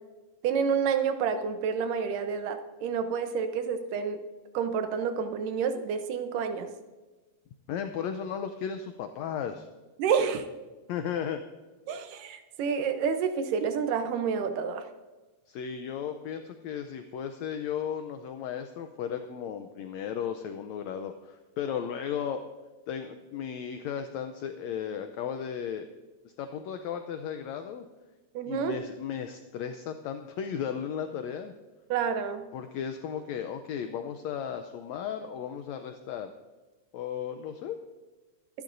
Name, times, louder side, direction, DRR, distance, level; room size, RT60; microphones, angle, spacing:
voice 1, 0.4-4.2 4.5-6.7 10.0-10.5 11.9-14.9 28.3-28.8 31.9-32.5, right 6 dB, 80° right, 8 dB, 2.5 m, -29 dB
voice 2, 7.7-9.7 10.9-11.4 15.5-22.5 22.9-25.9 26.4-27.8 28.5-31.5 32.5-36.3 36.9-37.8, left 8 dB, 80° left, 7 dB, 1.6 m, -35 dB
23.5 x 11.5 x 2.6 m, 1.2 s
omnidirectional pair, 3.8 m